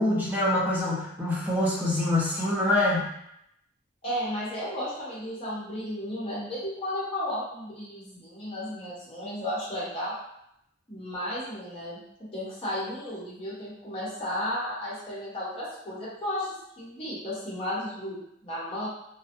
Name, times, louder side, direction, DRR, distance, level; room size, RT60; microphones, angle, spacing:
voice 1, 0.0-3.1, left 1 dB, 10° right, -6 dB, 0.6 m, -25 dB
voice 2, 4.0-10.1 10.9-12.0 12.3-18.9, equal, 30° left, -9 dB, 1.0 m, -34 dB
2.6 x 2.1 x 2.5 m, 0.77 s
head